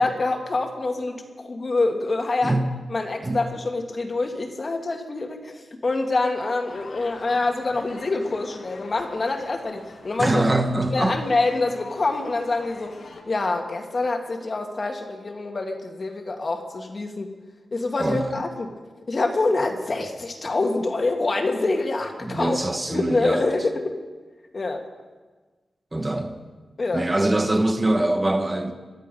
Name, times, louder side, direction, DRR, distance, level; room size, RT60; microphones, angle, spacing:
voice 1, 0.0-2.6 2.9-10.4 10.9-12.9 13.3-17.3 17.7-18.7 19.1-22.6 22.9-23.9 24.5-24.8 26.8-27.1, left 3 dB, 40° left, 1.8 m, -26 dB
sound 1, 6.7-13.2, left 3 dB, 75° left, 2.3 m, -44 dB
voice 2, 10.2-11.2 18.0-18.3 22.2-23.5 25.9-26.4 26.9-28.7, right 1 dB, 20° right, 1.2 m, -23 dB
21.5 x 12.0 x 5.3 m
wide cardioid pair, 105°, 0 cm